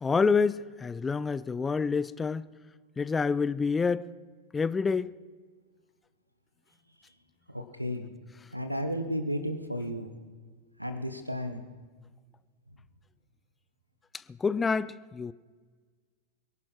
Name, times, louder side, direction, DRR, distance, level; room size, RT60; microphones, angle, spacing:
voice 1, 0.0-2.5 3.0-4.1 4.5-5.1 14.4-15.3, left 5 dB, 15° left, 0.4 m, -27 dB
voice 2, 7.5-8.1 8.5-10.1 10.8-11.6, equal, 90° right, 1.3 m, -33 dB
22.5 x 11.5 x 4.6 m
figure-of-eight pair, 90°, 0 cm